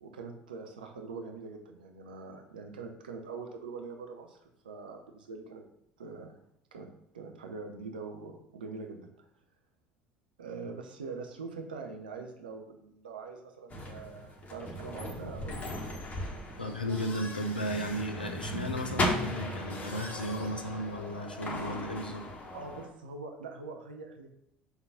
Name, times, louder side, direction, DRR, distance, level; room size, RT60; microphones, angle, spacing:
voice 1, 0.0-5.6 6.0-6.4 6.7-6.9 7.1-9.3 10.4-15.7 22.5-24.3, right 4 dB, 80° right, 4 dB, 0.7 m, -43 dB
sound 1, 13.7-22.9, left 1 dB, 30° left, 1.6 m, -37 dB
voice 2, 16.6-22.3, equal, 90° left, 5 dB, 0.6 m, -35 dB
5.7 x 3.9 x 5.6 m, 0.76 s
figure-of-eight pair, 65°, 5 cm